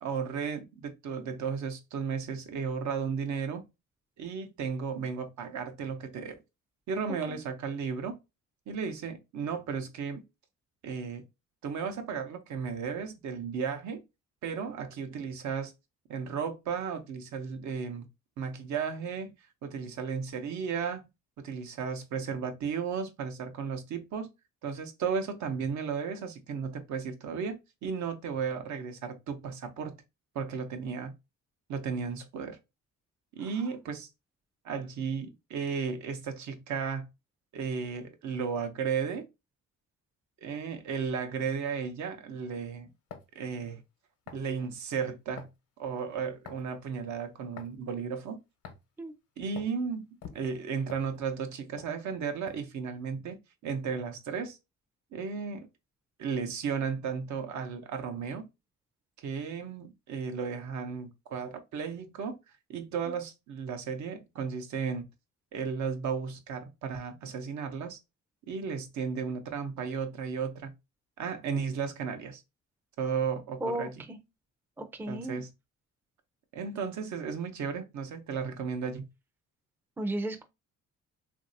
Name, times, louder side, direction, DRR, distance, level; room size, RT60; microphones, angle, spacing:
voice 1, 0.0-3.7 4.2-6.3 6.9-8.1 8.7-10.2 10.8-11.2 11.6-14.0 14.4-15.7 16.1-18.1 18.4-19.3 19.6-21.1 21.4-24.3 24.6-29.9 30.3-31.1 31.7-32.6 33.4-34.1 34.6-37.1 37.5-39.2 40.4-42.9 43.3-43.8 44.3-45.5 45.8-48.4 49.4-50.1 50.3-54.6 55.1-55.7 56.2-58.5 59.2-62.4 62.7-65.1 65.5-68.0 68.5-70.7 71.2-72.4 73.0-73.9 75.1-75.5 76.5-79.1, right 6 dB, 70° right, 0.7 m, -34 dB
sound 1, 43.1-43.4 44.3-44.5 45.4-45.6 46.4-46.7 47.6-47.8 48.6-48.9 49.5-49.8 50.2-51.5 51.8-51.9 52.5-52.7, left 6 dB, 80° left, 0.9 m, -46 dB
voice 2, 73.6-74.2 74.8-75.4 80.0-80.4, right 1 dB, 5° right, 0.4 m, -34 dB
3.1 x 2.6 x 2.6 m
cardioid pair, 90°, 30 cm